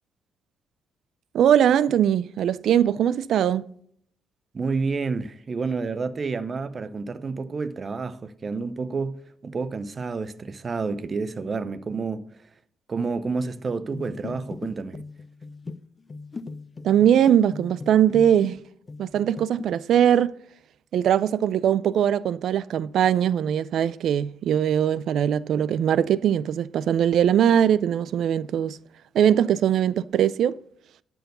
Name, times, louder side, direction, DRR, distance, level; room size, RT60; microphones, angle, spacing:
voice 1, 1.3-3.7 16.8-18.6 19.0-20.3 20.9-28.8 29.1-30.5, right 9 dB, 70° right, 0.3 m, -21 dB
voice 2, 4.5-12.4 12.9-15.0, right 4 dB, 35° right, 0.7 m, -29 dB
sound 1, 13.9-18.6 18.9-19.7, left 3 dB, 30° left, 0.6 m, -38 dB
12.0 x 4.7 x 6.6 m
cardioid pair, 90°, 0 cm